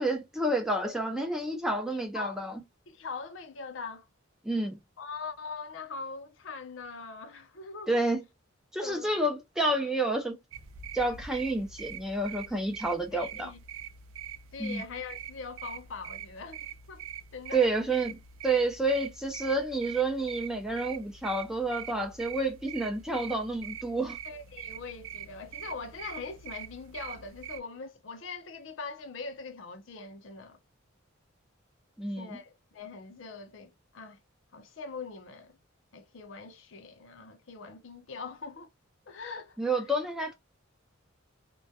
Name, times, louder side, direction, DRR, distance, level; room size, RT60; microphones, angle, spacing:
voice 1, 0.0-2.6 4.4-4.8 7.9-8.2 8.7-10.4 10.9-13.5 14.6-14.8 17.5-24.2 32.0-32.4 39.6-40.3, right 2 dB, ahead, 0.4 m, -29 dB
voice 2, 2.9-4.1 5.0-8.0 8.8-9.1 13.1-13.6 14.5-17.1 17.3-17.7 24.2-30.6 32.2-34.2 34.5-35.6 35.9-38.7 39.1-39.6, left 4 dB, 65° left, 0.5 m, -42 dB
sound 1, 10.5-27.6, right 9 dB, 80° right, 0.4 m, -44 dB
2.2 x 2.1 x 2.6 m
head